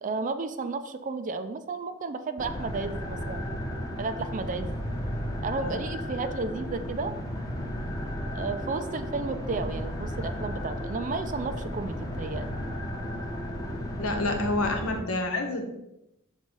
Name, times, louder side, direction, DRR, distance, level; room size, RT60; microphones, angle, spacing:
voice 1, 0.0-3.5 4.0-4.7 5.4-7.1 8.3-12.6, right 3 dB, 35° right, 10 dB, 0.4 m, -33 dB
sound 1, 2.4-15.0, equal, 15° left, 0.9 m, -34 dB
voice 2, 14.0-15.6, left 2 dB, 75° left, 3 dB, 1.1 m, -28 dB
6.4 x 3.7 x 5.3 m, 0.88 s
head